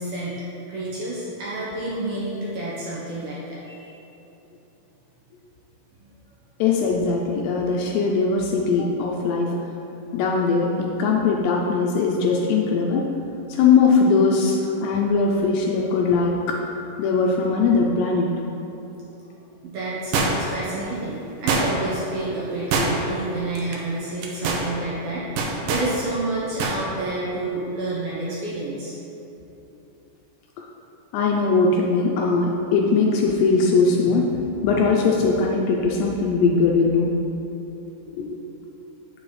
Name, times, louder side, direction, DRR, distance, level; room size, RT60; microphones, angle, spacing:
voice 1, 0.0-3.9 19.6-29.0, right 2 dB, 70° right, -8 dB, 2.4 m, -29 dB
voice 2, 6.6-9.5 10.1-13.0 13.5-16.6 17.0-18.3 31.1-34.3 34.6-37.1 38.2-38.4, left 4 dB, 80° left, -1 dB, 2.6 m, -20 dB
sound 1, 20.1-20.6 21.5-22.0 22.7-23.2 23.6-23.8 24.2-24.7 25.4-25.9 26.6-26.8 27.1-27.2, right 3 dB, 85° right, 2.1 m, -23 dB
8.6 x 7.1 x 3.2 m, 3.0 s
omnidirectional pair, 5.2 m